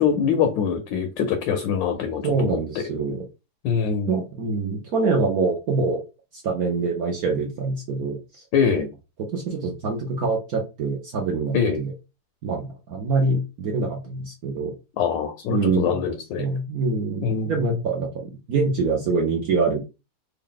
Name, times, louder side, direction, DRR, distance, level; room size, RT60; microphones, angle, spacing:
voice 1, 0.0-2.8 3.6-4.2 8.5-8.9 11.5-11.8 15.0-16.5 17.2-17.8, left 7 dB, 70° left, 1.1 m, -24 dB
voice 2, 2.2-3.2 4.1-6.0 6.3-8.4 9.3-11.9 12.4-14.7 15.5-16.0 16.4-19.8, right 4 dB, 70° right, 0.8 m, -25 dB
3.6 x 2.4 x 3.7 m
omnidirectional pair, 2.4 m